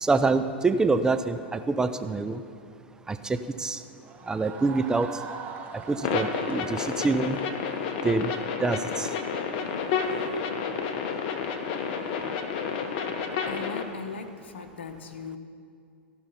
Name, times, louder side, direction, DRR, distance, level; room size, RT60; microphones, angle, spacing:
voice 1, 0.0-2.4 3.1-3.8 4.3-5.1 5.9-7.4 8.0-8.3 8.6-9.1, right 3 dB, 10° right, 9 dB, 0.4 m, -26 dB
sound 1, 4.0-8.8, right 6 dB, 25° right, 1.1 m, -43 dB
sound 2, 6.0-13.8, left 6 dB, 50° left, 1.0 m, -30 dB
voice 2, 13.5-15.4, left 5 dB, 75° left, 8 dB, 1.0 m, -38 dB
16.0 x 5.9 x 5.6 m, 2.4 s
hypercardioid pair, 105°, 6 cm